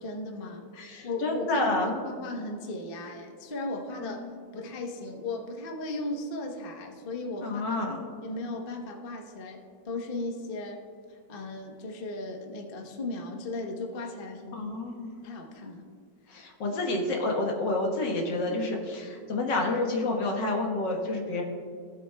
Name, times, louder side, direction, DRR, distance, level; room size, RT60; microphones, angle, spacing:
voice 1, 0.0-0.7 1.0-4.2 4.5-7.6 8.2-10.8 11.1-14.6 15.2-15.8, left 2 dB, 40° left, 2 dB, 0.9 m, -36 dB
voice 2, 0.7-2.0 4.0-4.2 7.4-8.1 14.5-15.1 16.3-21.4, left 2 dB, 75° left, 1 dB, 1.9 m, -29 dB
16.5 x 7.5 x 2.2 m, 2.2 s
omnidirectional pair, 2.0 m